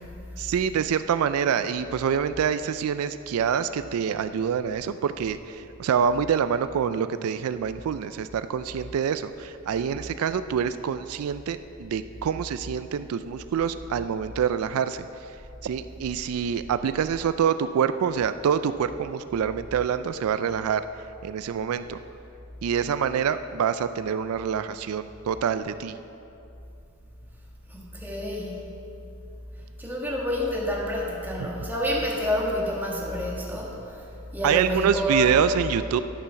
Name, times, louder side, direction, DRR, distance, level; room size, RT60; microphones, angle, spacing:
voice 1, 0.4-15.0 15.6-20.8 21.2-22.0 22.6-26.0 31.4-31.5 34.4-36.0, right 7 dB, 85° right, 12 dB, 0.3 m, -26 dB
voice 2, 27.7-28.7 29.8-35.3, equal, 10° right, -4 dB, 1.6 m, -29 dB
11.5 x 7.0 x 5.7 m, 2.8 s
head